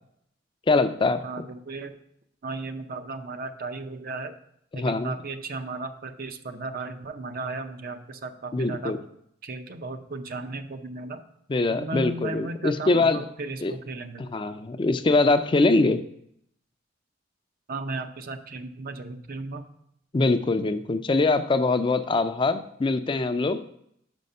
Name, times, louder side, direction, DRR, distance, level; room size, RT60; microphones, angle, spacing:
voice 1, 0.7-1.2 4.7-5.1 8.5-9.0 11.5-13.2 13.6-13.7 14.2-16.0 20.1-23.7, left 3 dB, 25° left, 10 dB, 0.4 m, -23 dB
voice 2, 1.2-2.0 2.4-4.4 4.7-8.9 9.4-11.2 11.7-14.3 17.7-19.6, right 3 dB, 50° right, 8 dB, 0.5 m, -35 dB
5.7 x 5.3 x 5.4 m, 0.73 s
head